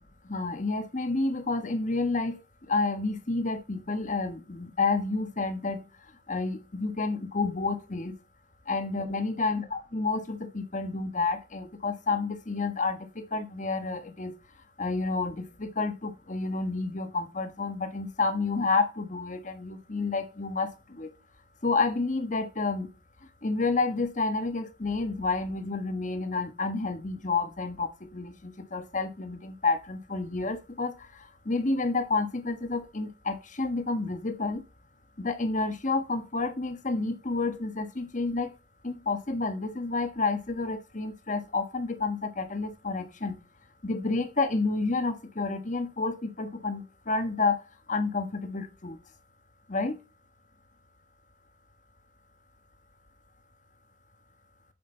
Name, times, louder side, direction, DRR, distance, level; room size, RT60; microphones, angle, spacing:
voice 1, 0.3-2.4 2.7-5.8 6.3-8.1 8.7-13.0 13.3-14.3 14.8-20.7 21.0-21.1 21.6-22.9 23.4-30.9 31.5-34.6 35.2-38.5 38.8-43.4 43.8-47.6 47.9-49.0 49.7-49.9, left 3 dB, 40° left, 1.3 m, -29 dB
8.8 x 6.5 x 4.4 m
head